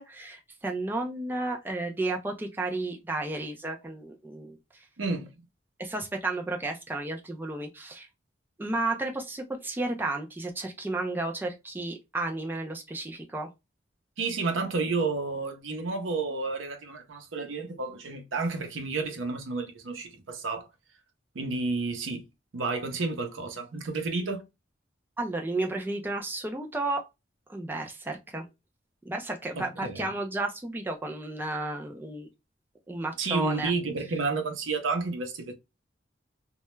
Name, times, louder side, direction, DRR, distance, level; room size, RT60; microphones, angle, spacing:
voice 1, 0.0-4.6 5.8-8.1 8.6-13.5 25.2-27.0 27.5-28.5 29.1-32.3 32.9-33.7, right 2 dB, 10° right, 0.3 m, -32 dB
voice 2, 5.0-5.3 14.2-20.7 21.3-22.2 22.5-24.4 29.6-30.1 33.2-35.5, right 3 dB, 90° right, 0.6 m, -31 dB
2.2 x 2.0 x 2.9 m
head